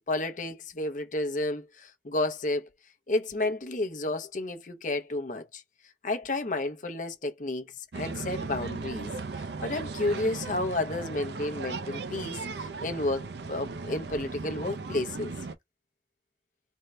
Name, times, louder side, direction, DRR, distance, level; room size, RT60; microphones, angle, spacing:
voice 1, 0.0-2.6 3.1-5.6 6.0-9.1 9.6-15.3, left 2 dB, 45° left, 0.7 m, -31 dB
sound 1, 7.9-15.6, right 4 dB, 65° right, 0.5 m, -37 dB
3.5 x 2.2 x 4.1 m
head